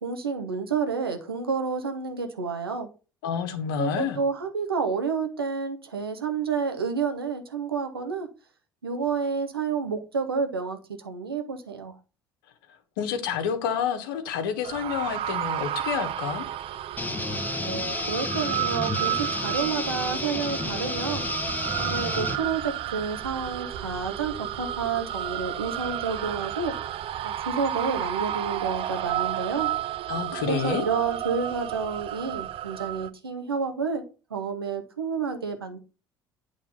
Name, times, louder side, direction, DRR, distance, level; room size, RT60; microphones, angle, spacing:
voice 1, 0.0-2.9 3.8-8.3 8.8-11.9 17.6-21.2 21.8-26.7 27.2-29.7 30.4-34.0 34.3-35.8, right 5 dB, 90° right, 6 dB, 0.9 m, -30 dB
voice 2, 3.2-4.2 13.0-16.4 30.1-30.8, left 8 dB, 70° left, 9 dB, 1.1 m, -29 dB
sound 1, 14.6-33.1, right 12 dB, 50° right, 0.6 m, -32 dB
sound 2, 17.0-22.4, left 2 dB, 15° left, 1.0 m, -31 dB
8.6 x 3.5 x 5.5 m, 0.34 s
figure-of-eight pair, 60°, 12 cm